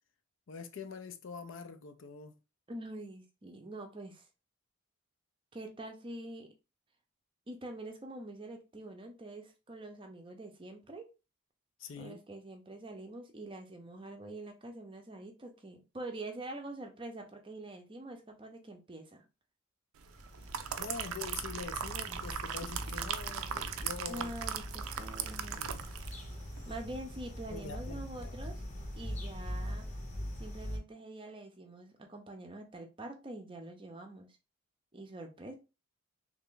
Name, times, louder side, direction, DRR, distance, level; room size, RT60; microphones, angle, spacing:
voice 1, 0.5-2.3 11.8-12.2 20.8-24.3 25.6-25.9 27.5-28.4, left 5 dB, 60° left, 0.5 m, -44 dB
voice 2, 2.7-4.3 5.5-6.5 7.5-11.1 12.0-19.2 24.1-25.7 26.7-28.6 29.0-29.9 30.4-34.3 34.9-35.5, right 1 dB, 25° right, 0.5 m, -45 dB
sound 1, 20.0-30.8, equal, 35° left, 0.8 m, -42 dB
sound 2, 20.2-26.2 26.6-26.7, right 8 dB, 75° right, 0.4 m, -39 dB
3.3 x 2.5 x 3.6 m
head